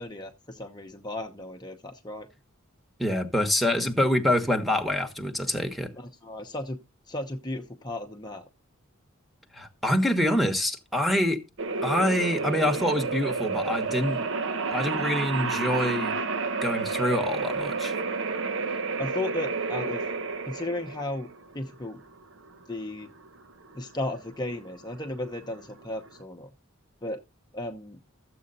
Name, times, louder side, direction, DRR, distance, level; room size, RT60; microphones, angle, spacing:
voice 1, 0.0-2.3 5.9-6.8 7.1-8.4 19.0-20.0 20.5-21.3 21.5-22.0 22.7-23.1 23.7-26.5 27.0-27.2 27.5-28.0, left 1 dB, 20° left, 0.9 m, -35 dB
voice 2, 3.0-5.9 9.5-11.4 11.8-14.2 14.7-16.2 16.6-18.0, left 1 dB, ahead, 1.2 m, -26 dB
sound 1, 11.6-26.1, right 4 dB, 65° right, 1.0 m, -30 dB
13.0 x 7.7 x 4.0 m
head